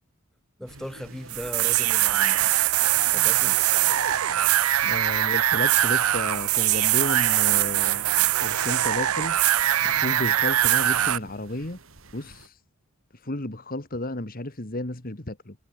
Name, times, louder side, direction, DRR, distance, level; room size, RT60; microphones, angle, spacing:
voice 1, 0.6-2.6 3.1-3.6, equal, ahead, 7.7 m, -38 dB
sound 1, 0.7-12.5, right 2 dB, 65° right, 3.8 m, -47 dB
sound 2, 1.3-11.2, right 13 dB, 90° right, 0.6 m, -22 dB
voice 2, 4.8-8.1 8.4-9.4 9.8-11.8 12.1-12.6 13.1-15.6, left 1 dB, 40° left, 2.0 m, -32 dB
head